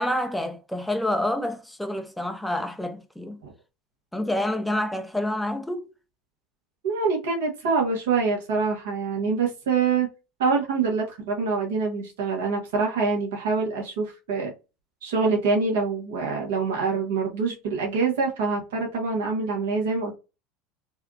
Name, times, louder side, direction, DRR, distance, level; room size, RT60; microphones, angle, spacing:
voice 1, 0.0-3.4 4.1-5.9, left 1 dB, 5° left, 0.5 m, -28 dB
voice 2, 6.8-10.1 10.4-14.5 15.0-20.2, right 4 dB, 75° right, 1.2 m, -25 dB
3.3 x 2.4 x 2.4 m
hypercardioid pair, 85°, 0 cm